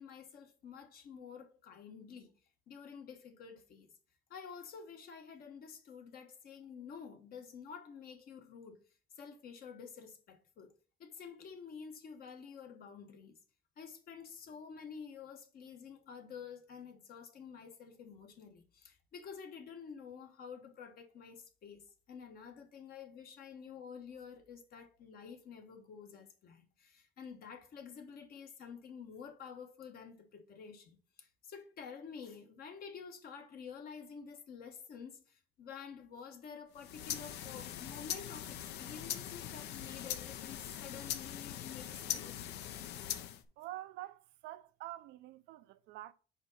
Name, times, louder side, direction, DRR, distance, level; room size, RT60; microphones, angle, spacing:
voice 1, 0.0-2.3 2.7-3.9 4.3-8.8 9.2-10.7 11.0-13.3 13.8-42.4, left 6 dB, 60° left, 1.3 m, -50 dB
sound 1, 36.7-43.4, left 11 dB, 80° left, 0.6 m, -41 dB
voice 2, 43.6-46.1, right 15 dB, 90° right, 0.5 m, -47 dB
5.0 x 4.0 x 5.4 m
cardioid pair, 110°, 17 cm